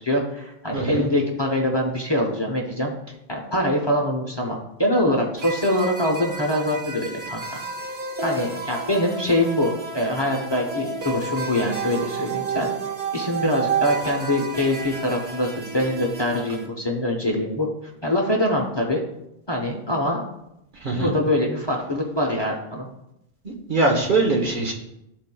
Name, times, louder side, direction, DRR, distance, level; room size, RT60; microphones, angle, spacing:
voice 1, 0.0-2.9 3.3-7.6 8.2-12.7 13.1-17.7 18.0-19.0 19.5-20.2 20.9-22.9, left 1 dB, 30° left, -1 dB, 0.8 m, -24 dB
voice 2, 0.7-1.1 20.8-21.1 23.7-24.7, right 2 dB, 50° right, -1 dB, 1.1 m, -21 dB
sound 1, 5.4-16.7, right 4 dB, 70° right, 1.1 m, -31 dB
12.0 x 4.2 x 2.2 m, 0.84 s
omnidirectional pair, 1.1 m